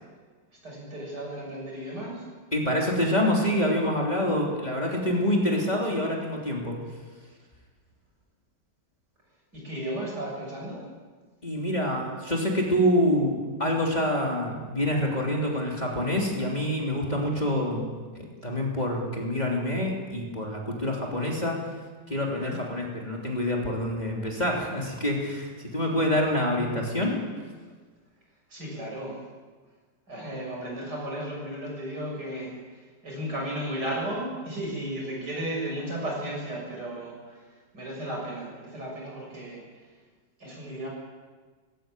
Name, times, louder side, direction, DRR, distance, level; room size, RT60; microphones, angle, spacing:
voice 1, 0.6-2.3 9.5-10.8 22.3-22.6 25.9-26.0 28.5-29.2 30.1-39.9 40.4-40.9, right 1 dB, 65° right, -2 dB, 7.5 m, -35 dB
voice 2, 2.5-6.8 11.4-17.9 18.1-21.6 22.1-27.2, left 1 dB, 20° left, -2 dB, 3.4 m, -26 dB
20.0 x 15.5 x 9.2 m, 1.5 s
omnidirectional pair, 1.9 m